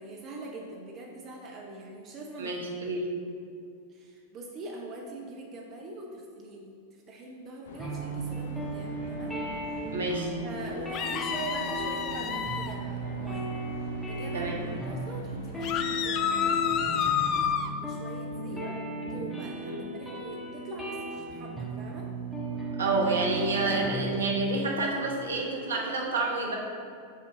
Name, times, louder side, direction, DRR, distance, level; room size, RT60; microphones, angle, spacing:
voice 1, 0.0-2.5 3.9-9.3 9.6-9.8 10.4-13.6 14.1-17.0 17.3-17.5 17.8-22.1 23.8-23.9, right 2 dB, 35° right, 0 dB, 0.7 m, -43 dB
voice 2, 2.4-3.1 9.9-10.3 14.3-14.5 18.5-18.7 19.7-19.8 22.8-26.6, right 2 dB, 70° right, -1 dB, 1.0 m, -29 dB
sound 1, 7.6-17.6, left 2 dB, 65° left, 0.7 m, -45 dB
sound 2, 7.8-24.4, right 2 dB, 5° left, 1.3 m, -36 dB
sound 3, 10.9-12.7 15.6-17.7, left 8 dB, 35° left, 0.4 m, -29 dB
5.7 x 4.6 x 4.9 m, 2.4 s
figure-of-eight pair, 90°, 0 cm